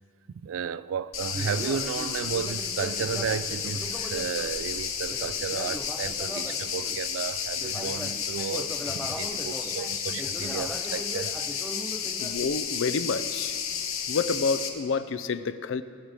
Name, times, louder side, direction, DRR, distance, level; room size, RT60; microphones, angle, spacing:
voice 1, 0.4-11.4, right 7 dB, 75° right, 0.3 m, -33 dB
sound 1, 1.1-14.7, left 7 dB, 85° left, 1.1 m, -32 dB
Conversation, 1.3-7.1 7.5-12.4, equal, ahead, 0.4 m, -40 dB
voice 2, 12.2-13.6 14.1-15.8, left 4 dB, 70° left, 0.5 m, -28 dB
18.5 x 7.6 x 5.0 m
head